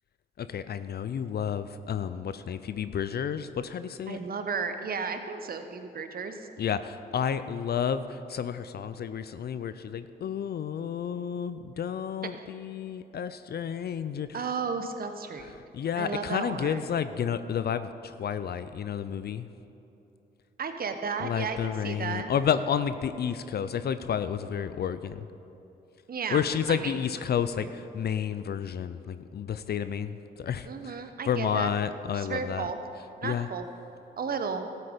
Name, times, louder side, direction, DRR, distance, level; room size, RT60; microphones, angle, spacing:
voice 1, 0.4-4.2 6.6-14.4 15.7-19.5 21.2-25.3 26.3-31.0 31.3-32.7 33.2-33.5, left 8 dB, 55° left, 12 dB, 0.5 m, -31 dB
voice 2, 4.1-6.5 14.3-15.5 15.9-16.9 20.6-22.3 26.1-26.4 26.7-27.0 27.6-27.7 30.6-31.7 32.1-32.8 33.2-33.7 34.2-34.7, right 5 dB, 50° right, 7 dB, 1.0 m, -33 dB
13.5 x 8.4 x 5.1 m, 3.0 s
supercardioid pair, 50°, 20 cm